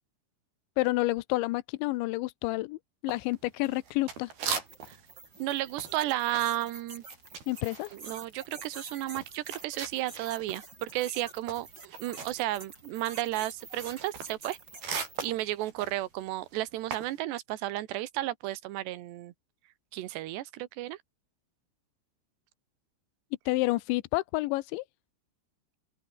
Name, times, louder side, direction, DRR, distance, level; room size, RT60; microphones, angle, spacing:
voice 1, 0.8-2.8 3.0-4.3 7.5-7.9 23.5-24.8, left 20 dB, 85° left, 3.1 m, -29 dB
sound 1, 3.1-5.1 5.4-10.6 10.9-17.2, right 6 dB, 55° right, 6.7 m, -40 dB
sound 2, 4.7-15.4, right 4 dB, 25° right, 4.5 m, -48 dB
voice 2, 5.4-7.0 7.9-14.6 15.2-19.3 19.9-21.0, right 15 dB, 75° right, 3.2 m, -33 dB
open air
omnidirectional pair, 5.3 m